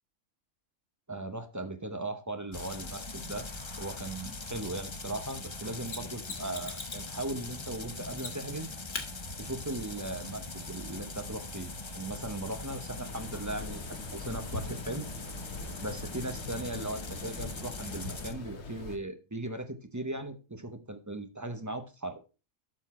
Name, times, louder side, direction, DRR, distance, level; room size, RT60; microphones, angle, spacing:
voice 1, 1.1-3.5 3.8-8.7 9.4-15.1 15.8-22.2, right 2 dB, 15° right, 7 dB, 0.8 m, -38 dB
sound 1, 2.5-18.3, left 3 dB, 30° left, 0.6 m, -41 dB
Mechanisms, 5.9-7.1 8.2-8.6 8.9-9.1 11.8-11.9, left 4 dB, 90° left, 2.3 m, -40 dB
sound 2, 13.1-19.0, left 3 dB, 50° left, 1.5 m, -43 dB
12.5 x 4.4 x 4.3 m, 0.31 s
omnidirectional pair, 1.5 m